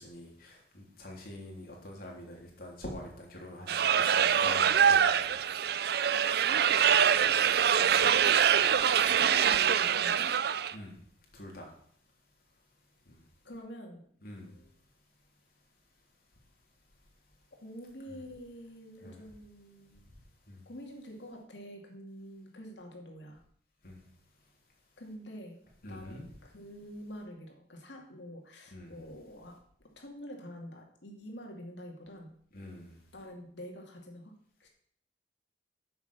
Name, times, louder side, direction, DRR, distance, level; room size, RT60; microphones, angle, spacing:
voice 1, 0.0-5.4 10.7-11.0 11.3-11.7 13.0-13.2 14.2-14.6 18.1-18.2 19.0-19.2 20.5-20.7 23.8-24.1 25.8-26.2 28.7-29.0 32.5-33.0, left 1 dB, 55° left, -1 dB, 3.4 m, -45 dB
sound 1, 3.7-10.7, right 8 dB, 65° right, 0.5 m, -24 dB
voice 2, 9.1-10.4 13.4-14.0 14.4-14.7 17.5-20.1 20.7-23.4 25.0-29.6 30.0-32.3 33.1-34.3 34.6-34.7, equal, 85° left, 1 dB, 2.5 m, -46 dB
9.8 x 7.1 x 6.9 m, 0.64 s
head